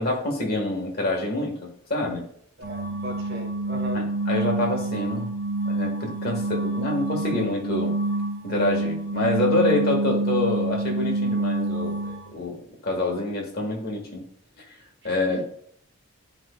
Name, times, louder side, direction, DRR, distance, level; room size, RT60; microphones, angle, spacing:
voice 1, 0.0-2.2 3.9-5.3 5.7-7.9 8.4-14.2 15.0-15.4, left 2 dB, 45° left, 1 dB, 1.5 m, -27 dB
voice 2, 2.6-4.1 15.0-15.4, left 1 dB, 50° right, 3 dB, 1.2 m, -37 dB
sound 1, 2.6-12.3, right 2 dB, 75° right, 1.4 m, -27 dB
10.5 x 4.9 x 2.3 m, 0.63 s
head